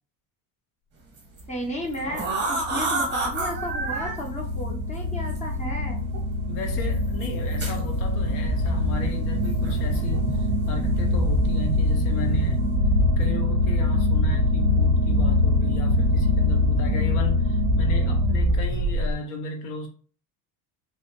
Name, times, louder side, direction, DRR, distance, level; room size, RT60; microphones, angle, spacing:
sound 1, 1.2-1.4 1.9-4.1 5.3-5.4 6.1-6.2 7.2-7.8 9.6-10.4 10.6-11.0 11.5-11.8 12.2-12.5, right 3 dB, 20° right, 0.8 m, -29 dB
voice 1, 1.5-6.0, left 1 dB, 15° left, 0.5 m, -33 dB
sound 2, 1.6-19.2, left 1 dB, 55° right, 0.5 m, -23 dB
voice 2, 6.5-12.7 13.2-19.9, left 3 dB, 75° left, 0.9 m, -35 dB
2.9 x 2.0 x 2.9 m
cardioid pair, 145°, 48 cm